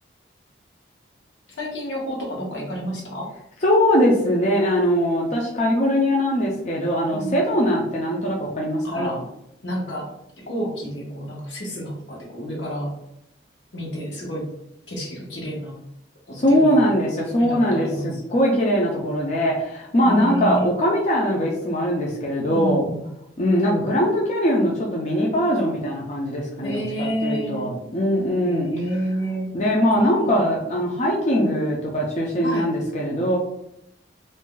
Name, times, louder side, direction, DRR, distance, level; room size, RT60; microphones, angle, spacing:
voice 1, 1.5-3.3 7.1-7.4 8.8-9.3 9.6-10.1 10.4-13.0 13.7-14.5 14.9-15.7 16.3-16.8 17.4-18.2 20.0-20.7 22.5-23.0 26.6-27.7 28.4-29.5 30.2-30.4 32.4-32.7, equal, 80° left, -2 dB, 1.1 m, -29 dB
voice 2, 3.6-9.2 16.3-22.9 23.4-28.7 29.5-33.4, equal, 40° left, -3 dB, 0.5 m, -21 dB
2.6 x 2.2 x 3.7 m, 0.80 s
head